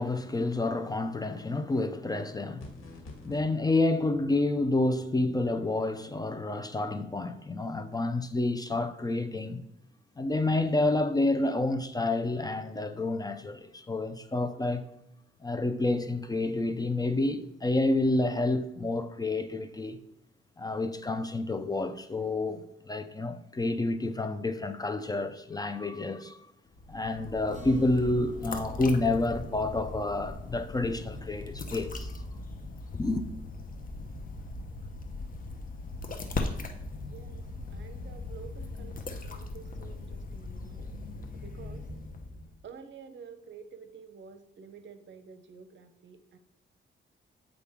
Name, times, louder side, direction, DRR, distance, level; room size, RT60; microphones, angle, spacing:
voice 1, 0.0-2.9 3.2-9.6 10.2-14.9 15.4-20.0 20.6-26.4 26.9-32.1 32.9-33.3, left 2 dB, 20° left, 0.4 m, -29 dB
sound 1, 2.6-3.4, left 2 dB, 75° left, 1.9 m, -46 dB
sound 2, 26.7-42.6, left 3 dB, 40° left, 0.8 m, -39 dB
Acoustic guitar, 27.5-32.2, right 2 dB, 40° right, 1.7 m, -52 dB
voice 2, 37.0-37.4 37.7-40.9 41.3-41.9 42.6-46.4, right 6 dB, 65° right, 0.8 m, -49 dB
8.3 x 4.9 x 3.6 m
cardioid pair, 110°, 21 cm